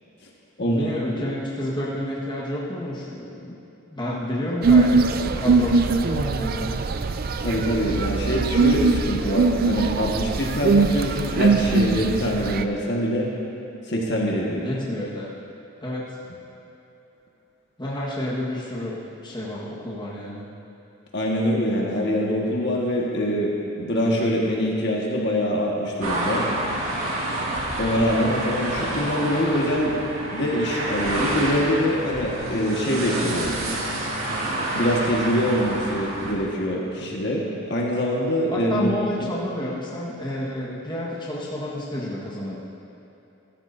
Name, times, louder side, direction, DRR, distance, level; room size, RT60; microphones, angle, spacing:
voice 1, 0.6-3.5 3.9-6.8 14.6-15.3 15.8-16.2 17.8-20.4 38.5-42.6, left 1 dB, 20° left, -6 dB, 1.5 m, -30 dB
sound 1, 4.6-12.6, right 4 dB, 45° right, 0.4 m, -21 dB
voice 2, 7.4-13.3 13.9-14.7 21.1-26.5 27.8-30.0 30.3-33.5 34.7-38.9, equal, 50° left, -3 dB, 1.5 m, -24 dB
sound 2, 26.0-36.3, right 1 dB, 75° right, 2.0 m, -28 dB
15.5 x 13.5 x 2.7 m, 2.9 s
head